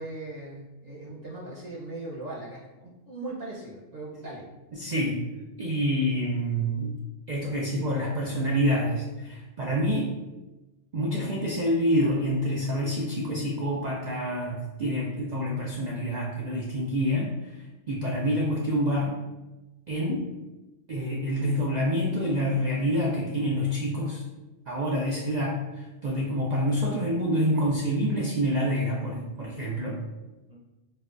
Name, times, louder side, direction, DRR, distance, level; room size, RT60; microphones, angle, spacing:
voice 1, 0.0-4.4 4.9-5.0 26.2-26.4 30.5-30.6, right 2 dB, 55° right, -5 dB, 1.0 m, -39 dB
voice 2, 4.7-5.2 5.6-6.9 7.3-10.1 10.9-19.2 19.9-20.3 20.9-24.2 24.7-30.0, equal, 80° right, -3 dB, 0.4 m, -27 dB
4.4 x 2.2 x 2.4 m, 1.0 s
omnidirectional pair, 1.4 m